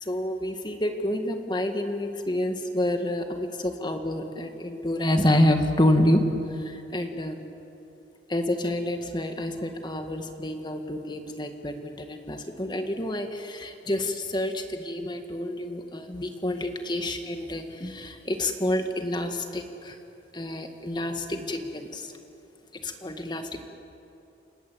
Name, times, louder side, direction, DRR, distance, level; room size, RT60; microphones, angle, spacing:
voice 1, 0.0-6.2 6.6-7.4 8.3-20.0 20.3-22.1 22.8-23.6, left 1 dB, 25° left, 6 dB, 1.9 m, -28 dB
29.5 x 19.5 x 8.7 m, 2.8 s
head